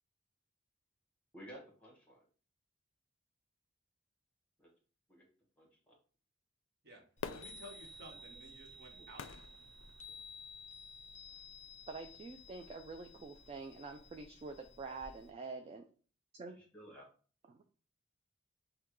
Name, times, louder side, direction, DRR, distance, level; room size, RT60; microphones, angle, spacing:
voice 1, 1.3-2.2 4.6-4.7 5.1-5.2 5.6-5.9 8.1-8.2 8.9-9.1 16.5-17.1, equal, 5° left, -1 dB, 1.3 m, -54 dB
Fireworks, 7.2-10.5 11.1-11.2, left 6 dB, 85° left, 0.4 m, -49 dB
Chime, 7.2-15.3, left 3 dB, 40° left, 0.6 m, -54 dB
voice 2, 7.3-9.3, equal, 60° right, 0 dB, 1.1 m, -54 dB
voice 3, 11.9-15.8 16.3-16.6 17.5-17.6, right 3 dB, 30° right, 5 dB, 0.3 m, -46 dB
5.7 x 2.3 x 3.0 m, 0.41 s
head